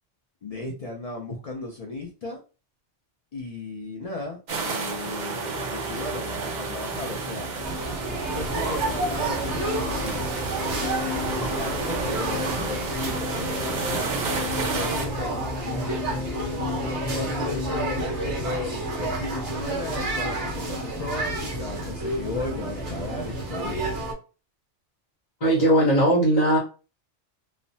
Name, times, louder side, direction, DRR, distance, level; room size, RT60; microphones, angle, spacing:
voice 1, 0.4-2.4 3.3-4.4 4.6-7.5 8.3-10.3 11.3-16.3 17.1-23.9, left 2 dB, 70° left, 0 dB, 0.3 m, -35 dB
sound 1, 4.5-15.1, right 4 dB, 50° right, 0.6 m, -31 dB
sound 2, 5.4-18.0, left 6 dB, 90° left, 1.0 m, -36 dB
sound 3, 7.6-24.1, right 2 dB, 70° right, 1.2 m, -30 dB
voice 2, 25.4-26.6, right 1 dB, 35° left, -3 dB, 0.7 m, -19 dB
3.1 x 2.1 x 2.6 m, 0.33 s
omnidirectional pair, 1.3 m